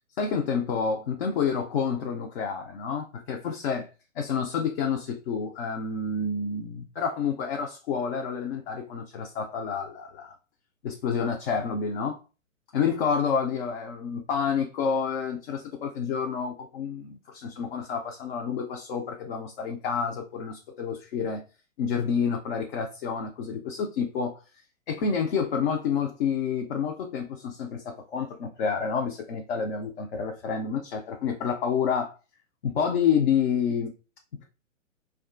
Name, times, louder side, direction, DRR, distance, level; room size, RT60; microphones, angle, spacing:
voice 1, 0.2-3.9 4.2-10.3 10.8-12.2 12.7-21.4 21.8-24.4 24.9-32.1 32.6-33.9, left 6 dB, 50° left, 2 dB, 0.5 m, -29 dB
2.6 x 2.3 x 2.4 m, 0.33 s
hypercardioid pair, 125°, 40 cm